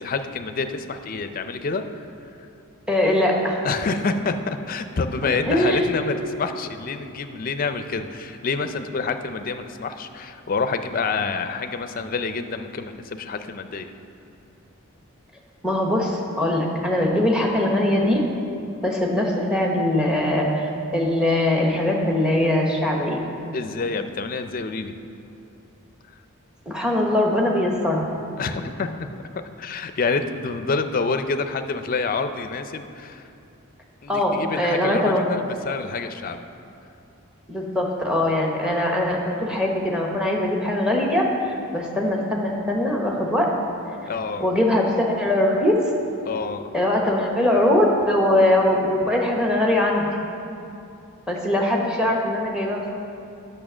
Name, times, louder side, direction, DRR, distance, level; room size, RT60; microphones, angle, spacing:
voice 1, 0.0-1.8 3.6-13.9 23.5-24.9 28.4-29.1 29.6-33.3 34.0-36.5 44.1-44.5 46.2-46.7, left 4 dB, 40° left, 9 dB, 0.4 m, -27 dB
voice 2, 2.9-3.6 5.5-5.8 15.6-18.2 18.8-20.6 20.9-23.2 26.7-28.1 34.1-35.2 37.5-43.5 44.4-45.9 46.7-50.1 51.3-52.9, left 1 dB, 5° right, -1 dB, 1.0 m, -21 dB
8.6 x 6.6 x 6.1 m, 2.7 s
head